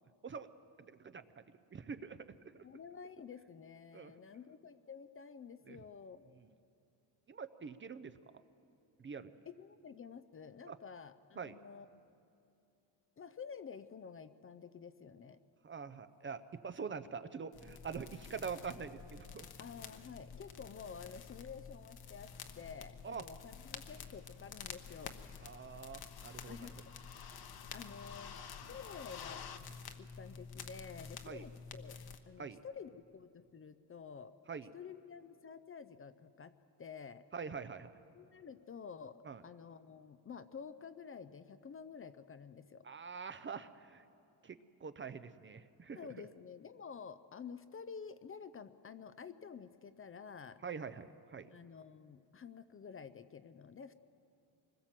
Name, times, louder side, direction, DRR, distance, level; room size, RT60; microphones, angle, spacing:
voice 1, 0.8-1.4 1.7-2.6 3.9-4.1 5.7-5.8 7.3-8.1 9.0-9.3 10.7-10.8 11.4-11.6 15.6-19.5 23.0-23.2 25.4-26.7 31.3-31.5 32.4-32.6 34.5-34.7 37.3-37.9 39.2-39.4 42.8-44.0 44.4-46.3 50.6-51.5, right 6 dB, 30° right, 12 dB, 0.6 m, -45 dB
voice 2, 2.6-6.3 9.5-12.1 13.2-15.4 19.6-25.2 26.4-26.7 27.7-28.4 28.7-29.4 30.0-32.0 32.3-34.3 34.7-36.5 36.8-37.2 38.1-39.2 39.4-42.9 45.9-50.6 51.5-53.9, left 6 dB, 30° left, 12 dB, 0.5 m, -50 dB
sound 1, 17.5-32.2, left 6 dB, 60° left, 1.2 m, -50 dB
25.5 x 20.5 x 7.5 m, 2.6 s
wide cardioid pair, 175°, 42 cm